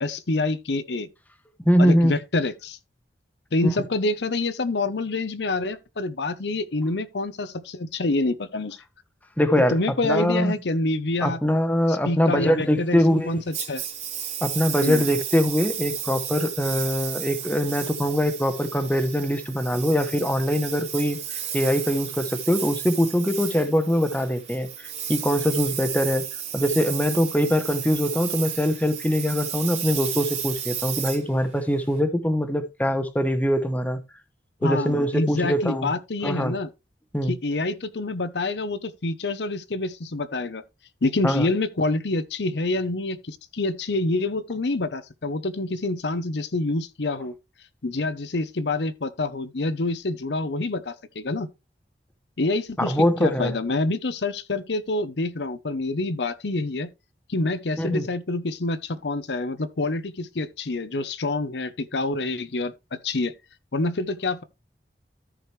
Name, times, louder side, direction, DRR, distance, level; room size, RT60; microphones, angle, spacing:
voice 1, 0.0-1.1 1.8-2.8 3.5-8.8 9.7-11.4 11.9-13.8 14.8-15.0 34.6-36.7 37.2-40.6 41.0-47.3 47.8-51.5 52.4-56.9 57.3-62.7 63.0-63.3 63.7-64.4, left 2 dB, 75° left, 0.8 m, -27 dB
voice 2, 1.6-2.1 9.4-9.8 10.0-10.5 11.2-13.4 14.4-24.7 25.1-26.3 26.5-34.0 34.6-35.9 36.2-36.6 37.1-37.3 41.2-41.5 52.8-53.5 57.8-58.1, equal, 10° left, 0.9 m, -23 dB
Engine, 13.5-32.0, right 9 dB, 40° right, 2.1 m, -33 dB
13.5 x 4.9 x 3.2 m
head